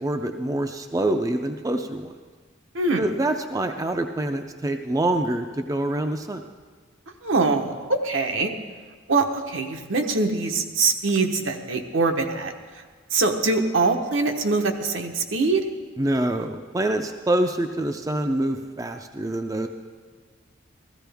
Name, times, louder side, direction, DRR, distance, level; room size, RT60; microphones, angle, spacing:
voice 1, 0.0-2.1 3.0-6.4 16.0-19.7, right 1 dB, 15° right, 6 dB, 0.4 m, -26 dB
voice 2, 2.7-3.1 7.2-8.5 9.1-12.5 13.1-15.6, right 3 dB, 75° right, 4 dB, 1.0 m, -23 dB
15.0 x 14.0 x 3.5 m, 1.5 s
head